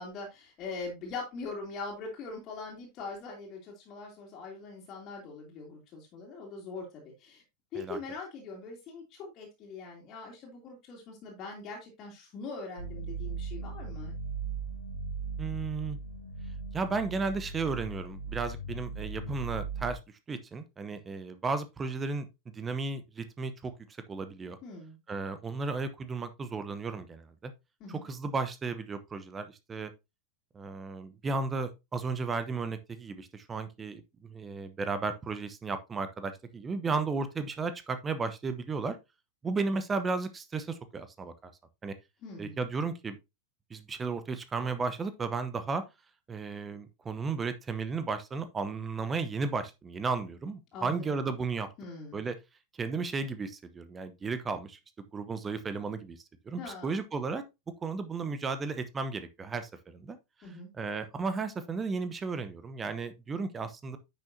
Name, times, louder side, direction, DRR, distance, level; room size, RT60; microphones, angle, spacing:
voice 1, 0.0-7.4 7.7-14.2 24.6-25.0 27.8-28.0 42.2-42.6 50.7-51.2 51.8-52.2 56.6-57.0 60.4-60.7, left 3 dB, 35° left, 2.7 m, -42 dB
sound 1, 12.8-19.9, right 4 dB, 80° left, 1.9 m, -38 dB
voice 2, 15.4-16.0 16.7-20.0 20.3-22.3 22.5-23.7 24.1-24.6 25.1-27.5 27.9-29.9 30.5-39.0 39.4-41.3 41.8-41.9 42.4-43.2 43.7-45.8 46.3-51.7 52.1-52.4 52.8-54.8 55.1-56.2 56.5-57.4 57.8-60.2 60.8-64.0, right 4 dB, 20° right, 0.9 m, -34 dB
10.0 x 6.2 x 2.7 m
figure-of-eight pair, 90°, 0 cm